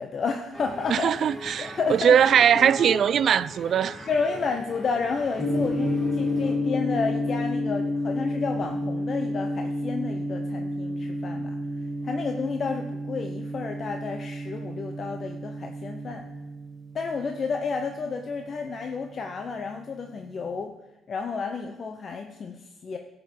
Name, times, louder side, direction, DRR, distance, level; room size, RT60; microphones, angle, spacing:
voice 1, 0.0-1.1 1.4-2.7 4.1-11.6 12.0-16.2 16.9-20.7 21.1-23.0, left 5 dB, 50° left, 0.6 m, -31 dB
sound 1, 0.5-6.6, equal, 30° left, 3.7 m, -40 dB
voice 2, 0.9-4.1, right 8 dB, 60° right, 0.3 m, -21 dB
Gong, 5.4-19.5, left 1 dB, 90° left, 3.1 m, -30 dB
14.5 x 5.4 x 4.4 m
cardioid pair, 90°, 0 cm